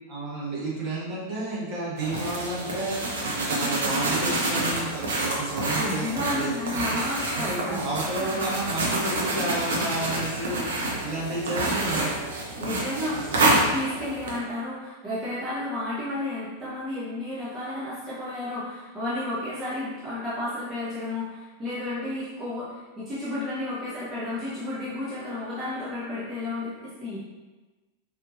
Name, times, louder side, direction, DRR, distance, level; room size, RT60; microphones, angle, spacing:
voice 1, 0.1-7.0 7.3-10.7 11.0-12.1 13.1-13.5, right 2 dB, 35° right, -7 dB, 1.3 m, -31 dB
sound 1, 2.0-14.4, right 2 dB, 65° right, 0.7 m, -28 dB
voice 2, 5.8-7.8 8.2-8.4 12.6-27.2, left 1 dB, 20° right, -11 dB, 1.1 m, -32 dB
4.2 x 2.8 x 2.6 m, 1.2 s
figure-of-eight pair, 90°, 0 cm